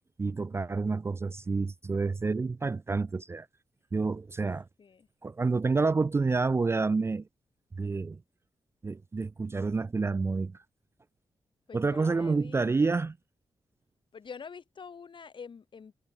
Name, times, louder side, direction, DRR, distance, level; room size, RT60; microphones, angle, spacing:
voice 1, 0.2-3.5 3.9-4.7 5.2-7.3 7.8-8.2 8.8-10.6 11.7-13.1, right 4 dB, 25° right, 0.4 m, -28 dB
voice 2, 11.7-13.1 14.1-15.9, left 6 dB, 50° left, 2.3 m, -46 dB
wide cardioid pair, 105°, 10 cm